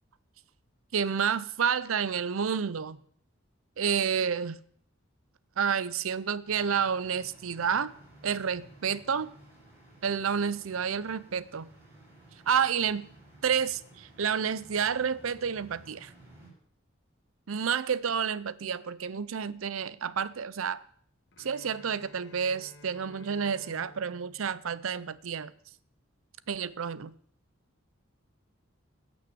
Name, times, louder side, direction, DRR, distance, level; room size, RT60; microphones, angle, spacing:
voice 1, 0.9-3.0 3.8-4.6 5.6-7.9 8.2-9.3 10.0-11.7 12.5-13.0 13.4-16.1 17.5-20.8 21.4-25.5 26.5-27.1, right 7 dB, 85° right, 0.6 m, -30 dB
sound 1, 6.4-16.5, right 1 dB, 10° right, 6.7 m, -55 dB
Bowed string instrument, 21.3-25.4, left 2 dB, 60° left, 1.2 m, -54 dB
16.0 x 6.2 x 6.9 m
head